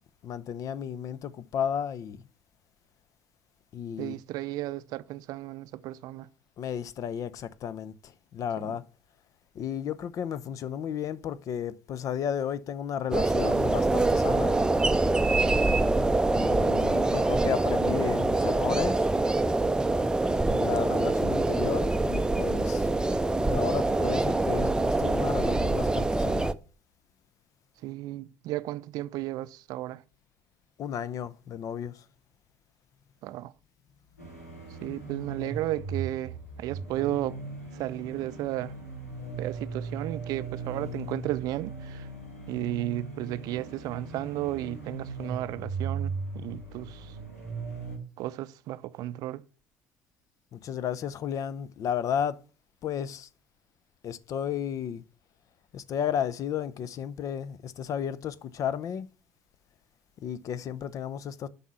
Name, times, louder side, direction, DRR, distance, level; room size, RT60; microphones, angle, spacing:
voice 1, 0.2-2.2 3.7-4.2 6.6-8.8 9.5-14.6 16.3-19.1 20.5-22.9 23.5-26.5 30.8-31.9 50.5-52.4 52.8-53.3 54.0-55.0 55.7-59.1 60.2-61.5, left 8 dB, 45° left, 0.6 m, -33 dB
voice 2, 4.0-6.3 8.6-8.7 27.8-30.0 33.2-33.5 34.8-37.4 37.7-38.8 39.4-42.1 42.5-47.2 48.2-49.4, right 15 dB, 55° right, 0.5 m, -34 dB
sound 1, 13.1-26.5, right 2 dB, 10° right, 0.6 m, -25 dB
sound 2, 34.2-48.0, right 4 dB, 90° left, 2.3 m, -38 dB
7.3 x 5.5 x 7.0 m
figure-of-eight pair, 55°, 8 cm